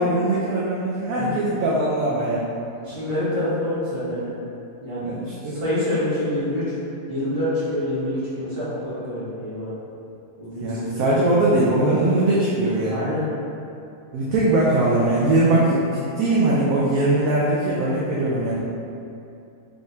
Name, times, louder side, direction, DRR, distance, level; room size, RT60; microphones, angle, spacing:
voice 1, 0.0-2.4 5.0-5.6 10.6-13.0 14.1-18.6, right 2 dB, 70° right, -6 dB, 0.9 m, -21 dB
voice 2, 2.8-4.3 4.8-5.1 5.4-6.7 7.1-9.7 10.4-10.8 12.8-13.3, left 1 dB, 40° right, -13 dB, 1.5 m, -26 dB
3.6 x 3.5 x 2.6 m, 2.6 s
omnidirectional pair, 1.7 m